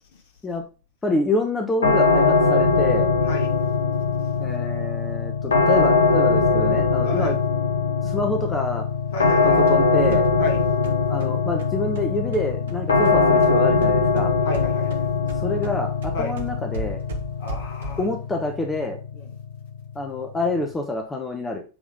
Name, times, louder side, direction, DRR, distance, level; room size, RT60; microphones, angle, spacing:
voice 1, 1.0-3.1 4.4-7.4 8.0-8.9 9.4-10.3 11.1-14.3 15.4-17.0 18.0-19.0 19.9-21.6, left 2 dB, 15° left, 1.1 m, -27 dB
sound 1, 1.8-20.7, left 4 dB, 70° left, 1.0 m, -21 dB
voice 2, 7.0-7.3 9.1-9.6 10.4-10.6 14.4-15.0 16.1-16.3 17.4-18.0 19.1-19.3, left 2 dB, 55° left, 1.9 m, -32 dB
sound 2, 9.3-13.6 13.8-18.2, right 2 dB, 60° right, 1.5 m, -38 dB
8.3 x 3.5 x 3.7 m
figure-of-eight pair, 90°, 0 cm